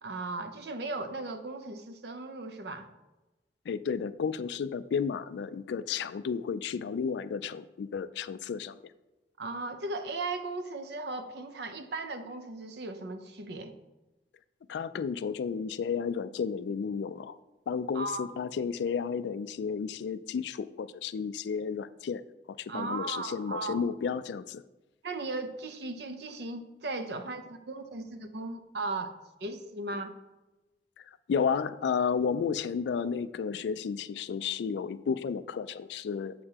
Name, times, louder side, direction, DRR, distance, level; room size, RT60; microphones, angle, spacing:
voice 1, 0.0-2.9 9.4-13.7 17.9-18.3 22.7-23.8 25.0-29.1 29.4-30.1, right 2 dB, 65° right, 8 dB, 0.6 m, -37 dB
voice 2, 3.7-8.8 14.7-17.4 17.7-22.2 22.6-24.6 31.0-36.3, left 6 dB, 70° left, 14 dB, 0.3 m, -32 dB
7.5 x 6.5 x 2.9 m, 1.1 s
head